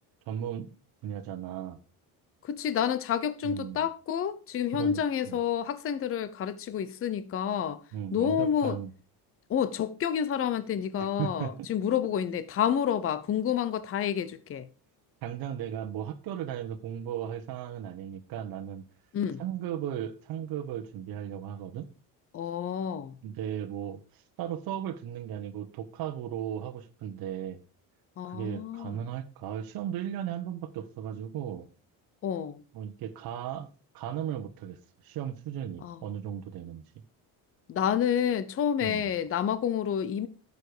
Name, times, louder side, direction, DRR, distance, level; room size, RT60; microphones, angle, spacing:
voice 1, 0.3-0.7 1.0-1.8 3.4-3.9 4.7-5.0 5.3-5.4 7.9-8.9 11.0-11.7 15.2-18.8 19.4-21.9 23.2-27.6 28.3-31.7 32.7-33.7 33.9-34.8 35.0-36.8 38.8-39.1, right 10 dB, 55° right, 1.3 m, -36 dB
voice 2, 2.4-7.8 8.1-8.8 9.5-14.7 19.1-19.4 22.3-23.2 28.2-29.0 32.2-32.6 35.8-36.0 37.7-40.3, left 8 dB, 30° left, 0.9 m, -29 dB
13.0 x 6.9 x 5.0 m
cardioid pair, 150°, 41 cm